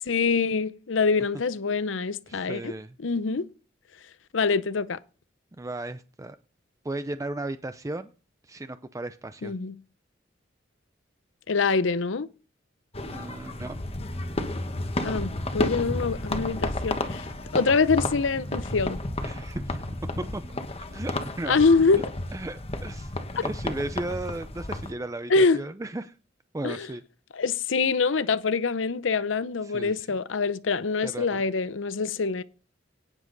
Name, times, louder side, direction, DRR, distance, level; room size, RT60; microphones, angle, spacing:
voice 1, 0.1-2.7 3.0-3.4 4.3-5.0 9.4-9.7 11.5-12.3 15.0-17.3 17.5-19.0 21.5-22.0 23.4-23.5 25.3-25.6 26.6-26.9 27.4-32.4, left 4 dB, 75° left, 0.7 m, -24 dB
voice 2, 2.3-3.0 5.6-6.4 6.8-8.1 8.4-9.5 13.1-13.8 19.2-19.8 20.2-20.4 20.9-21.6 21.9-22.0 22.3-23.1 23.4-26.2 26.5-27.0 29.6-30.1 31.0-31.4, right 2 dB, 15° right, 0.5 m, -35 dB
sound 1, 12.9-24.9, left 1 dB, 30° left, 1.2 m, -32 dB
18.0 x 7.3 x 4.0 m
head